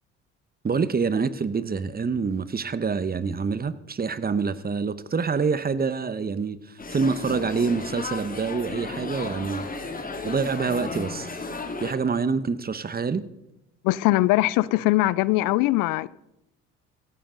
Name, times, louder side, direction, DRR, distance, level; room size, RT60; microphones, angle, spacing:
voice 1, 0.6-9.7 10.2-11.3 11.8-13.3, right 5 dB, 25° right, 1.0 m, -26 dB
sound 1, 6.8-11.9, left 3 dB, 25° left, 2.2 m, -34 dB
voice 2, 13.8-16.1, left 18 dB, 70° left, 0.5 m, -21 dB
16.0 x 12.5 x 3.9 m
hypercardioid pair, 60°, 33 cm